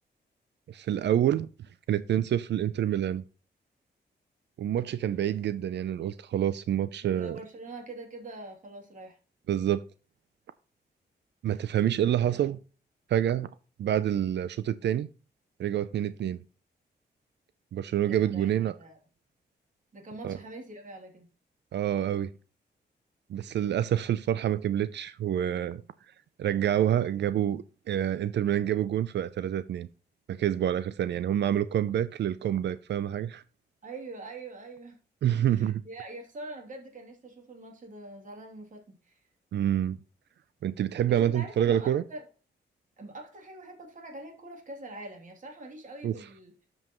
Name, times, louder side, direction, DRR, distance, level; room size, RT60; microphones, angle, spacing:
voice 1, 0.7-1.5 1.9-3.2 4.6-7.4 9.5-9.8 11.4-12.6 13.1-13.5 13.8-15.1 15.6-16.4 17.7-18.7 20.2-20.4 21.7-22.3 23.3-25.8 26.4-29.9 30.3-33.4 35.2-35.8 39.5-40.0 40.6-42.0 46.0-46.1, right 10 dB, 80° right, 0.5 m, -27 dB
voice 2, 7.1-9.2 18.1-19.0 19.9-21.3 33.8-35.0 35.4-39.2 41.1-42.3 43.0-46.5, right 2 dB, 45° right, 2.9 m, -44 dB
13.0 x 5.5 x 3.0 m
wide cardioid pair, 145°, 18 cm